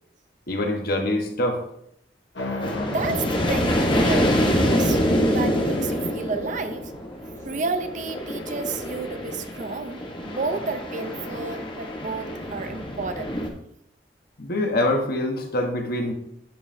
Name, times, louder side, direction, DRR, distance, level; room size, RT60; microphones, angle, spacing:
voice 1, 0.5-1.6 14.4-16.1, left 1 dB, 60° left, 3 dB, 1.2 m, -24 dB
sound 1, 2.3-8.4, left 1 dB, 80° left, 1.2 m, -37 dB
sound 2, 2.6-13.5, equal, 30° left, 1.1 m, -26 dB
voice 2, 2.9-6.9 7.4-13.3, right 3 dB, 45° right, 8 dB, 0.6 m, -31 dB
12.0 x 5.5 x 2.7 m, 0.72 s
head